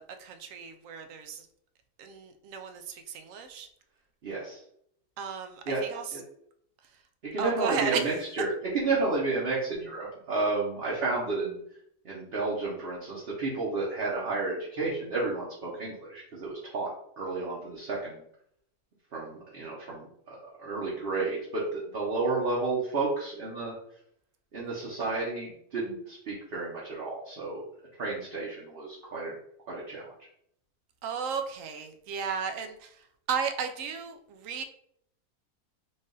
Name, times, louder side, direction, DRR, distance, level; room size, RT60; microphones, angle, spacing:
voice 1, 0.0-1.4 2.0-3.7 5.2-6.0 7.4-8.0 31.0-32.9 33.3-34.6, right 6 dB, 70° right, 7 dB, 0.9 m, -34 dB
voice 2, 4.2-4.6 5.7-5.8 6.1-6.2 7.2-11.6 12.0-16.9 17.2-18.2 19.1-23.7 24.5-27.6 28.0-29.3 29.7-30.1, right 3 dB, 45° right, -5 dB, 1.0 m, -31 dB
4.0 x 2.5 x 3.7 m, 0.70 s
omnidirectional pair, 1.6 m